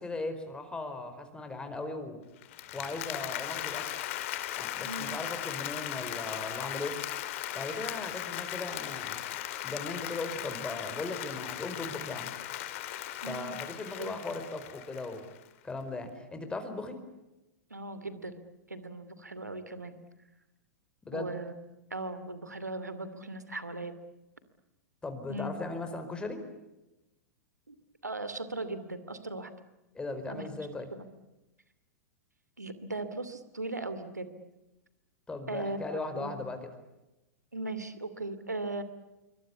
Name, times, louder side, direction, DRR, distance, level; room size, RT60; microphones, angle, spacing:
voice 1, 0.0-2.2 2.7-4.0 4.6-7.0 7.5-9.2 9.6-12.3 13.3-15.2 15.6-17.0 21.0-21.3 25.0-26.4 29.9-30.9 35.3-36.7, left 2 dB, 10° left, 7 dB, 4.7 m, -38 dB
Applause, 2.4-15.4, left 13 dB, 50° left, 2.3 m, -38 dB
voice 2, 13.2-13.5 14.0-14.2 17.7-20.0 21.1-21.5 21.9-23.9 25.3-25.5 27.7-27.8 28.0-29.5 30.3-30.4 30.9-31.1 32.6-34.3 35.5-36.3 37.5-38.8, right 2 dB, 85° right, 12 dB, 2.6 m, -38 dB
27.0 x 24.5 x 8.4 m, 0.98 s
figure-of-eight pair, 100°, 9 cm